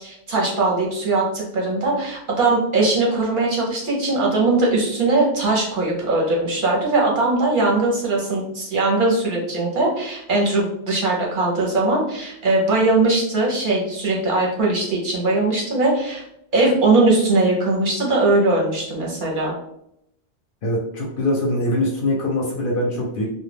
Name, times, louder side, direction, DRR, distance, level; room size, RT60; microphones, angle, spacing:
voice 1, 0.0-16.2 16.5-19.5, right 2 dB, 55° right, -3 dB, 0.7 m, -20 dB
voice 2, 20.6-23.3, left 1 dB, 60° left, -1 dB, 0.7 m, -23 dB
2.2 x 2.1 x 3.2 m, 0.78 s
omnidirectional pair, 1.2 m